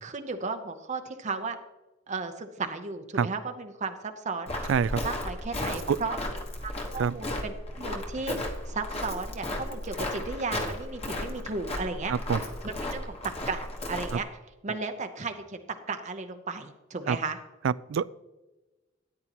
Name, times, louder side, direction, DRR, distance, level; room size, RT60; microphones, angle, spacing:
voice 1, 0.0-1.6 2.1-4.5 5.0-6.2 6.6-12.1 12.6-14.3 14.6-17.4, right 4 dB, 40° right, 7 dB, 0.7 m, -35 dB
Walk footsteps, 4.5-14.2, left 1 dB, 35° left, 1.3 m, -35 dB
voice 2, 4.7-5.0 5.9-6.0 7.0-7.1 12.1-12.4 17.1-17.2 17.6-18.2, right 7 dB, 70° right, 20 dB, 0.3 m, -26 dB
13.5 x 9.5 x 3.0 m, 1.1 s
head